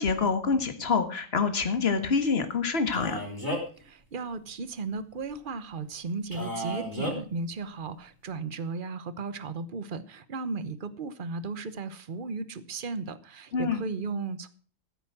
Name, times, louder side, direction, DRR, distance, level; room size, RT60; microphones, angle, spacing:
voice 1, 0.0-3.2 13.5-13.8, left 5 dB, 45° left, 1.8 m, -26 dB
Male speech man speaking, 2.9-3.8 6.3-7.1, equal, 15° left, 4.0 m, -33 dB
voice 2, 3.8-14.5, right 4 dB, 40° right, 1.1 m, -35 dB
14.5 x 8.2 x 6.1 m
omnidirectional pair, 1.5 m